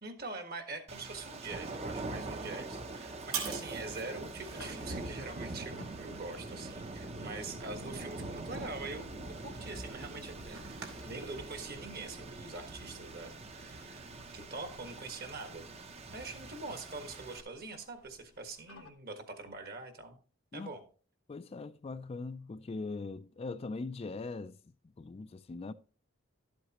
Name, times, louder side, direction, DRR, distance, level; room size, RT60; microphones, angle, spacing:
voice 1, 0.0-9.1 9.4-10.6 11.0-15.6 16.1-20.2 20.5-20.8, right 3 dB, 50° right, 1.5 m, -44 dB
sound 1, 0.9-17.4, right 2 dB, 30° right, 0.7 m, -44 dB
sound 2, 2.1-11.3, right 6 dB, 80° right, 2.5 m, -47 dB
sound 3, 4.1-18.9, left 2 dB, 75° left, 1.0 m, -57 dB
voice 2, 21.3-24.6 25.0-25.7, left 3 dB, 30° left, 0.3 m, -41 dB
12.0 x 7.9 x 2.9 m
head